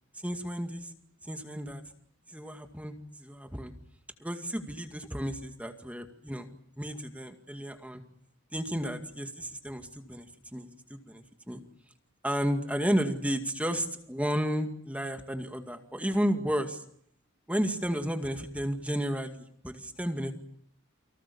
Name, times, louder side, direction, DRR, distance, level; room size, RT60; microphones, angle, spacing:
voice 1, 0.1-0.9 1.2-1.8 2.3-3.7 4.2-8.0 8.5-11.6 12.2-16.8 17.5-20.3, equal, 5° right, 5 dB, 2.1 m, -32 dB
30.0 x 24.0 x 7.0 m, 0.66 s
head